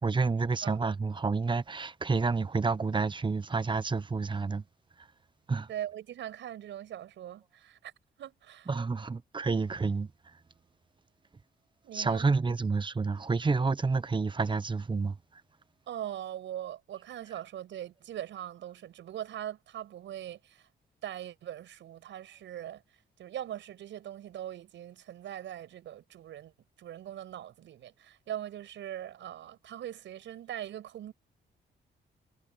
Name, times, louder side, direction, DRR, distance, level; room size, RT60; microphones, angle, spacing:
voice 1, 0.0-4.6 5.0-5.1 5.5-5.7 8.7-10.1 11.9-15.2, right 4 dB, 25° right, 1.1 m, -29 dB
voice 2, 5.7-7.9 8.2-8.7 11.8-12.3 15.9-20.7 21.0-22.8 23.2-31.1, right 11 dB, 85° right, 7.3 m, -41 dB
cardioid pair, 95°, 19 cm